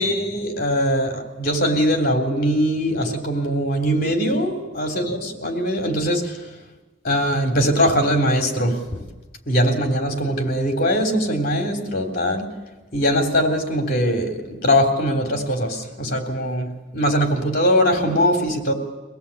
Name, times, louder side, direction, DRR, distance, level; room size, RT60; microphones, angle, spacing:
voice 1, 0.0-6.4 7.0-9.0 9.5-12.5 12.9-18.7, equal, 50° left, 3 dB, 3.4 m, -21 dB
24.0 x 18.0 x 8.5 m, 1.2 s
head